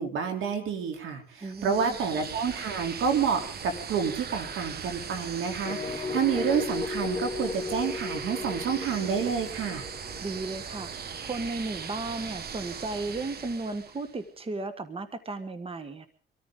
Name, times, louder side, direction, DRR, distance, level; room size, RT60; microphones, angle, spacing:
voice 1, 0.0-9.9, right 6 dB, 80° right, 5 dB, 3.3 m, -29 dB
voice 2, 1.4-2.0 10.2-16.1, right 3 dB, 30° right, 10 dB, 1.4 m, -35 dB
sound 1, 1.4-14.2, right 6 dB, 50° right, 1.3 m, -39 dB
sound 2, 5.6-11.5, left 4 dB, 25° left, 2.1 m, -35 dB
25.0 x 14.0 x 3.8 m, 0.38 s
cardioid pair, 90°, 20 cm